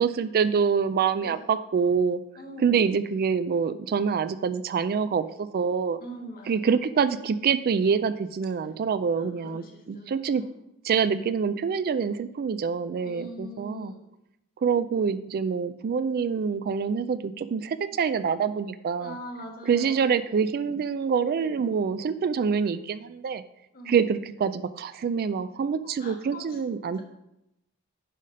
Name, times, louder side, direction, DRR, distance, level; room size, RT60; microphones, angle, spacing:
voice 1, 0.0-2.2 2.6-6.0 6.5-10.4 10.8-13.9 14.6-19.2 19.7-23.4 23.9-27.0, right 6 dB, 45° right, 13 dB, 0.3 m, -26 dB
voice 2, 2.4-2.9 6.0-6.7 9.2-10.5 13.0-14.0 19.0-20.1 23.7-24.1 26.0-27.0, equal, 45° left, 3 dB, 1.5 m, -42 dB
10.0 x 4.1 x 5.3 m, 0.86 s
head